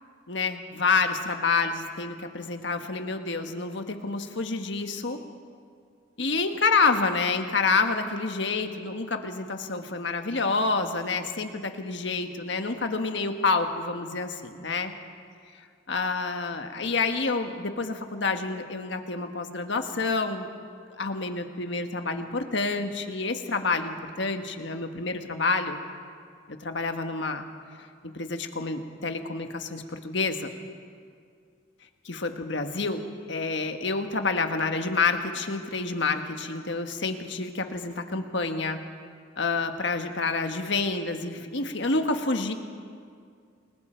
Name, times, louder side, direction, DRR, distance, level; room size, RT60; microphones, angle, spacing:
voice 1, 0.3-5.2 6.2-14.9 15.9-20.5 21.0-25.8 26.6-27.4 28.0-30.5 32.0-38.8 39.4-42.5, left 4 dB, 65° left, 6 dB, 1.5 m, -28 dB
29.0 x 21.5 x 4.5 m, 2.2 s
head